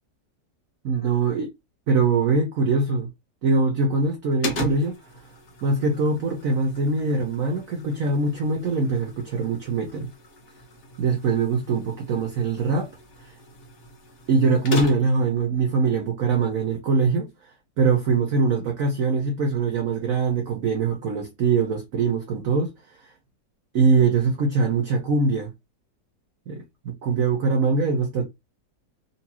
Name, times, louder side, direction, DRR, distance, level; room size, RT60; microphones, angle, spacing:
voice 1, 0.8-1.5 1.9-3.1 3.4-4.9 5.6-10.1 11.0-12.9 13.2-13.3 14.3-17.3 17.8-22.7 23.0-23.1 23.7-25.5 26.5-28.3, right 4 dB, 60° right, 1.1 m, -22 dB
sound 1, 4.4-15.3, equal, 45° left, 1.3 m, -36 dB
4.1 x 2.8 x 2.8 m
omnidirectional pair, 1.9 m